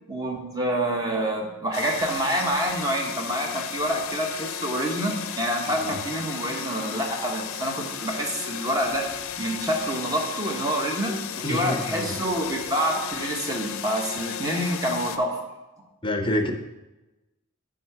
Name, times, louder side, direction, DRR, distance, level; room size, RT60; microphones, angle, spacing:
voice 1, 0.1-15.4, right 1 dB, 20° right, 1 dB, 1.0 m, -27 dB
sound 1, 1.7-15.2, left 9 dB, 80° left, 0.4 m, -35 dB
voice 2, 11.4-12.1 16.0-16.5, left 1 dB, 25° left, 5 dB, 0.6 m, -27 dB
9.1 x 3.8 x 4.6 m, 1.0 s
head